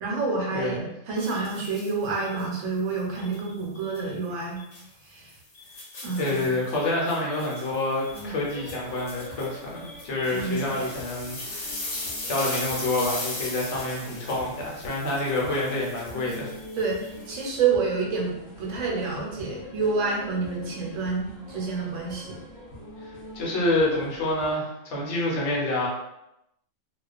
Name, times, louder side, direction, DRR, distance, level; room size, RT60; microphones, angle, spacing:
voice 1, 0.0-0.8 1.1-4.6 5.1-5.3 6.0-6.5 8.1-8.3 10.3-10.8 16.8-18.3 18.6-22.4, right 4 dB, 80° right, -1 dB, 1.0 m, -28 dB
voice 2, 0.5-0.9 6.2-16.5 23.0-25.9, left 2 dB, 65° left, -3 dB, 1.0 m, -28 dB
sound 1, 1.2-2.5 3.2-4.1 4.6-4.8 5.3-17.5, left 2 dB, 50° left, 0.5 m, -39 dB
sound 2, 8.1-24.6, left 1 dB, 35° left, 0.9 m, -44 dB
2.3 x 2.3 x 2.4 m, 0.85 s
omnidirectional pair, 1.3 m